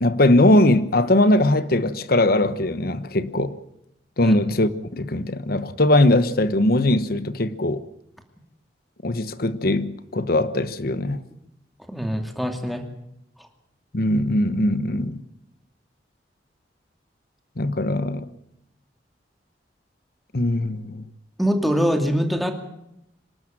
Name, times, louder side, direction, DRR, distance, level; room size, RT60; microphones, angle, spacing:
voice 1, 0.0-3.5 4.2-7.8 9.0-11.2 13.9-15.2 17.6-18.3 20.3-21.0, left 1 dB, 60° left, 1.2 m, -20 dB
voice 2, 11.9-12.8 21.4-22.5, equal, ahead, 2.6 m, -23 dB
26.0 x 12.5 x 9.0 m
head